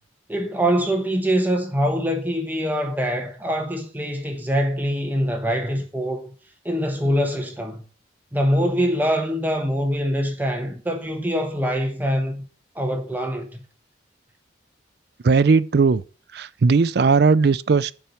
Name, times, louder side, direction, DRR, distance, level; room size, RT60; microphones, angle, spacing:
voice 1, 0.3-6.3 6.6-7.9 8.3-12.4 12.7-13.6, equal, 10° right, 1.1 m, -24 dB
voice 2, 15.2-16.0 16.3-17.9, right 4 dB, 55° right, 0.4 m, -17 dB
7.3 x 5.8 x 6.8 m
head